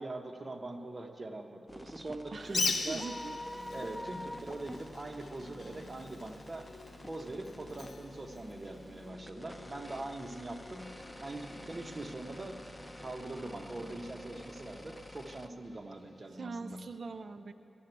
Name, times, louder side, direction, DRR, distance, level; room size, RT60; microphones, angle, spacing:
voice 1, 0.0-3.0 3.7-6.7 7.0-10.9 11.2-12.6 13.0-16.8, right 2 dB, 30° right, 4 dB, 0.8 m, -42 dB
sound 1, 1.7-15.5, left 1 dB, 15° left, 0.5 m, -48 dB
voice 2, 2.3-3.4 16.3-17.5, right 4 dB, 55° right, 10 dB, 0.3 m, -43 dB
Bird, 2.4-9.1, left 3 dB, 85° left, 0.9 m, -40 dB
sound 2, 2.4-16.2, left 1 dB, 50° left, 1.9 m, -55 dB
13.0 x 6.6 x 9.0 m, 2.8 s
wide cardioid pair, 115°, 0 cm